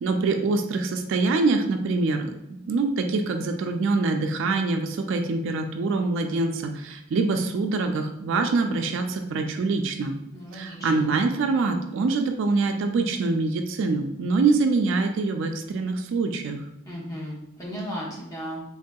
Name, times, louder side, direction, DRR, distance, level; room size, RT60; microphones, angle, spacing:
voice 1, 0.0-10.1 10.5-16.6, right 3 dB, 65° right, 5 dB, 0.3 m, -24 dB
voice 2, 10.3-11.1 16.9-18.6, equal, 15° left, -4 dB, 0.8 m, -35 dB
3.5 x 2.6 x 2.2 m, 0.86 s
head